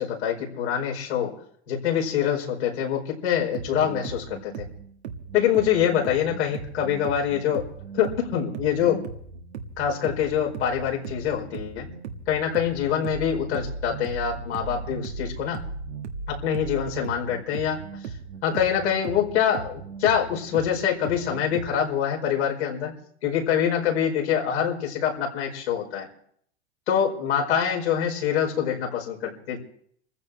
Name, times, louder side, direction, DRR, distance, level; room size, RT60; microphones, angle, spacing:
voice 1, 0.0-1.4 1.7-4.6 5.3-7.7 7.9-9.0 9.8-11.9 12.3-15.6 16.3-17.8 18.4-22.9 23.2-26.1 26.9-29.6, left 9 dB, 85° left, -1 dB, 4.9 m, -25 dB
sound 1, 3.4-21.7, right 5 dB, 85° right, 1.8 m, -38 dB
27.0 x 15.0 x 3.3 m, 0.64 s
hypercardioid pair, 115°, 32 cm